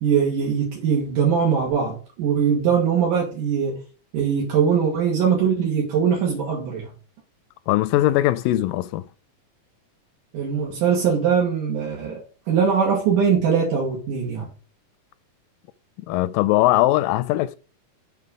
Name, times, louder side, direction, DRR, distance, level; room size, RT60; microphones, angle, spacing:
voice 1, 0.0-3.8 4.1-6.9 10.3-14.5, right 7 dB, 75° right, 3.3 m, -21 dB
voice 2, 7.7-9.1 16.1-17.6, left 15 dB, 90° left, 2.2 m, -20 dB
6.9 x 5.0 x 5.3 m
omnidirectional pair, 3.8 m